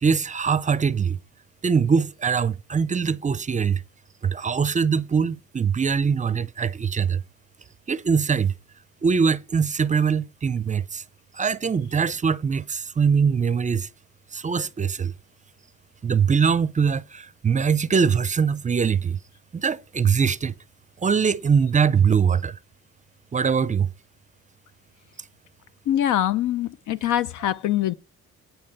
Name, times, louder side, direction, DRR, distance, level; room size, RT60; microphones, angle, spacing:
voice 1, 0.0-1.2 1.6-3.8 4.2-7.2 7.9-8.5 9.0-11.0 11.3-13.9 14.3-15.1 16.0-19.2 19.5-20.5 21.0-22.6 23.3-23.9, right 6 dB, 25° right, 0.5 m, -22 dB
voice 2, 25.9-27.9, left 11 dB, 85° left, 0.7 m, -23 dB
9.6 x 4.5 x 6.7 m
cardioid pair, 90°, 30 cm